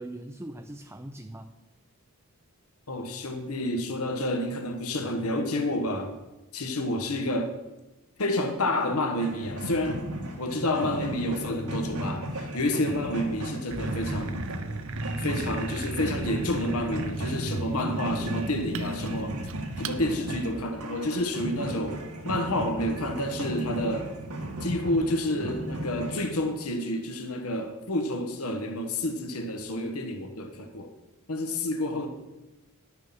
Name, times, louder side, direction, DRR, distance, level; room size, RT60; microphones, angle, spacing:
voice 1, 0.0-1.5 7.2-7.3 10.5-10.9 17.8-18.4, right 1 dB, 10° right, 5 dB, 0.5 m, -40 dB
voice 2, 2.9-6.1 6.5-7.5 8.2-10.1 10.4-14.4 15.2-19.4 19.8-24.1 24.6-30.9 31.3-32.1, left 1 dB, 75° left, 5 dB, 1.3 m, -29 dB
sound 1, 9.2-26.4, right 1 dB, 85° right, 2.1 m, -36 dB
sound 2, 13.7-20.0, right 2 dB, 60° right, 0.8 m, -36 dB
11.5 x 6.5 x 7.1 m, 1.1 s
head